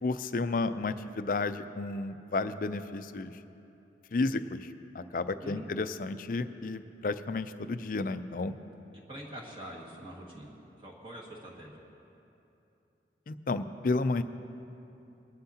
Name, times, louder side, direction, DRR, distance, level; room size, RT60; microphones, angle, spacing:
voice 1, 0.0-3.3 4.1-8.5 13.3-14.2, left 3 dB, 50° left, 11 dB, 0.4 m, -32 dB
voice 2, 8.9-11.8, right 1 dB, 30° right, -4 dB, 1.8 m, -45 dB
22.0 x 11.5 x 2.8 m, 2.8 s
head